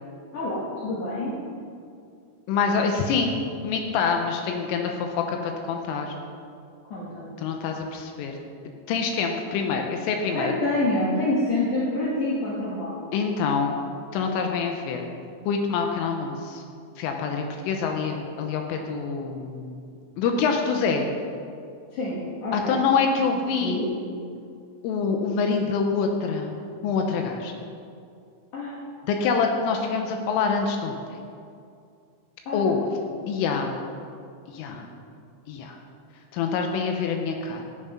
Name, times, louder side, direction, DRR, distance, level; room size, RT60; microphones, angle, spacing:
voice 1, 0.3-1.3 6.9-7.3 10.3-13.0 21.9-22.8 23.6-23.9 28.5-28.8 32.5-32.8, left 2 dB, 55° left, -7 dB, 2.4 m, -27 dB
voice 2, 2.5-6.1 7.4-8.4 8.9-10.5 13.1-13.7 14.1-15.0 15.5-16.6 17.0-21.1 22.5-23.9 24.8-26.6 26.8-27.5 29.1-30.9 32.5-32.8 33.3-33.8 34.5-34.9 35.5-35.8 36.3-37.6, left 5 dB, 80° left, 3 dB, 3.4 m, -26 dB
14.5 x 7.4 x 5.7 m, 2.4 s
omnidirectional pair, 5.9 m